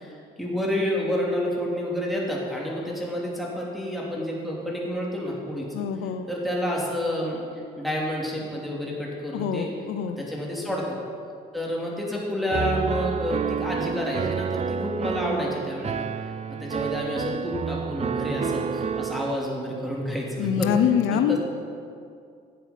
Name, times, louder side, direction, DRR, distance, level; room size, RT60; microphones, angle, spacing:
voice 1, 0.0-5.8 6.3-7.4 7.8-9.7 10.2-11.0 11.5-20.7 21.1-21.4, left 1 dB, ahead, -4 dB, 2.8 m, -29 dB
voice 2, 5.7-6.3 9.3-10.2 20.4-21.4, left 8 dB, 85° left, 9 dB, 0.6 m, -24 dB
Piano, 12.5-19.4, right 6 dB, 35° right, 0.4 m, -29 dB
10.5 x 8.3 x 5.8 m, 2.3 s
cardioid pair, 90°, 20 cm